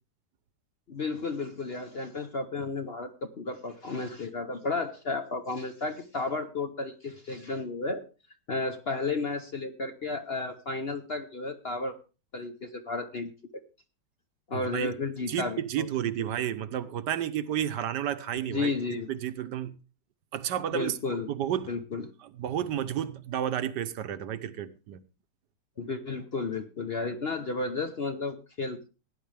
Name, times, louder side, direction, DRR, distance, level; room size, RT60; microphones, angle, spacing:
voice 1, 0.9-8.0 8.5-12.0 12.3-13.3 14.5-15.9 16.2-16.3 18.5-19.1 20.7-21.3 21.7-22.1 25.8-28.9, left 3 dB, 50° left, 0.8 m, -33 dB
voice 2, 14.5-14.9 15.3-18.7 19.1-19.7 20.3-21.0 21.3-21.7 22.2-25.0, right 10 dB, 75° right, 1.4 m, -31 dB
17.5 x 10.0 x 3.4 m
omnidirectional pair, 1.9 m